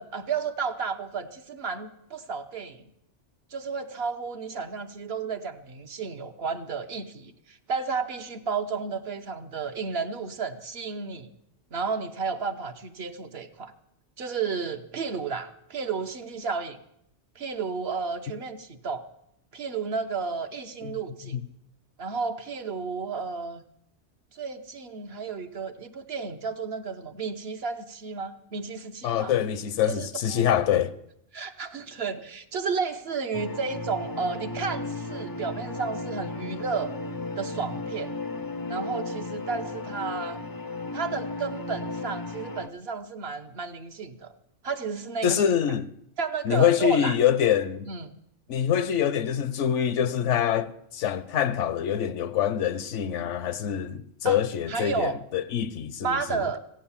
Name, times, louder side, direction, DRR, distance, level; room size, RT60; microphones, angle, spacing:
voice 1, 0.0-2.8 3.5-11.3 11.7-13.7 14.2-16.8 17.3-19.0 19.5-21.4 22.0-23.6 24.3-29.3 29.9-30.4 31.3-36.9 37.4-38.1 38.7-40.4 40.9-44.3 44.6-45.4 46.2-47.2 47.8-48.1 54.2-54.4 54.7-55.2 56.0-56.6, right 5 dB, 60° right, 1.1 m, -32 dB
voice 2, 29.0-31.0 45.2-45.9 46.4-47.9 48.5-56.5, left 9 dB, 75° left, 1.0 m, -25 dB
sound 1, 33.3-42.7, left 2 dB, 35° left, 0.3 m, -35 dB
15.5 x 8.6 x 7.1 m
omnidirectional pair, 1.3 m